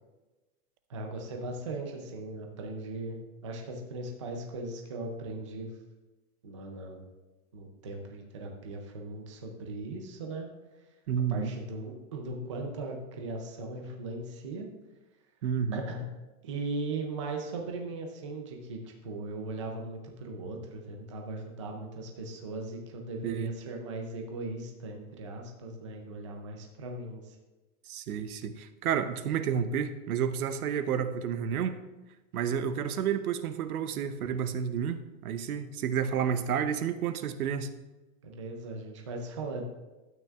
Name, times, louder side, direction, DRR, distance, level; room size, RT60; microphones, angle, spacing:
voice 1, 0.9-3.2 3.4-5.7 6.4-7.1 7.5-10.5 11.3-14.7 15.7-16.0 16.4-27.4 38.2-39.6, right 2 dB, 20° right, 2 dB, 0.4 m, -38 dB
voice 2, 11.1-11.6 15.4-15.8 23.2-23.5 27.8-31.8 32.3-37.7, right 8 dB, 75° right, 11 dB, 0.9 m, -30 dB
12.0 x 9.0 x 2.4 m, 1.1 s
supercardioid pair, 175°, 45 cm